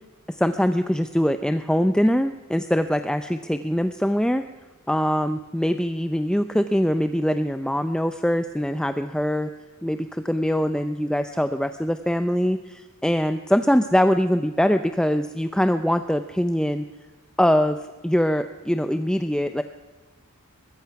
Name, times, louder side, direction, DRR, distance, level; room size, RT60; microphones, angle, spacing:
voice 1, 0.3-4.5 4.9-9.5 9.8-16.9 17.4-19.6, equal, 5° left, 9 dB, 0.6 m, -23 dB
23.5 x 21.0 x 5.9 m, 1.2 s
head